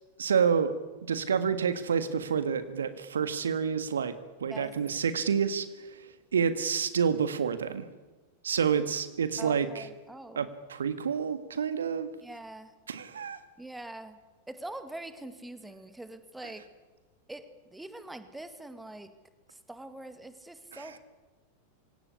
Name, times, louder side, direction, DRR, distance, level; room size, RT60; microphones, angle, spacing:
voice 1, 0.2-0.7 1.1-4.1 4.4-5.7 6.3-7.8 8.4-9.8 10.3-12.1 12.9-13.4, right 7 dB, 70° right, 12 dB, 1.6 m, -28 dB
voice 2, 9.4-10.5 12.2-12.7 13.6-14.2 14.5-16.7 17.3-19.1 19.5-21.0, right 1 dB, 5° right, 11 dB, 2.2 m, -43 dB
25.5 x 17.5 x 9.9 m, 1.2 s
figure-of-eight pair, 90°, 0 cm